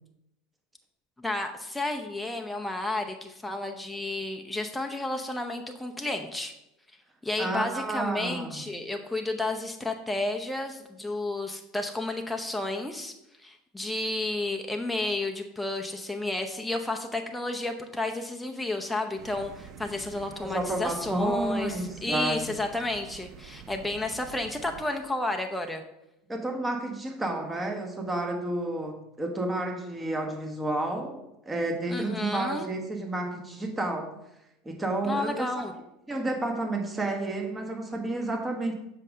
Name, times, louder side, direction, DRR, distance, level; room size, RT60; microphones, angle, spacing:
voice 1, 1.2-6.5 7.2-13.1 13.4-25.8 31.9-32.7 35.0-35.7, left 2 dB, 5° left, 3 dB, 0.7 m, -31 dB
voice 2, 7.4-8.6 20.4-22.4 26.3-34.1 34.6-35.5 36.1-38.7, right 2 dB, 15° right, 3 dB, 1.4 m, -31 dB
sound 1, 19.2-24.8, right 8 dB, 50° right, 0.6 m, -47 dB
7.5 x 5.4 x 3.7 m, 0.87 s
hypercardioid pair, 80°, 0 cm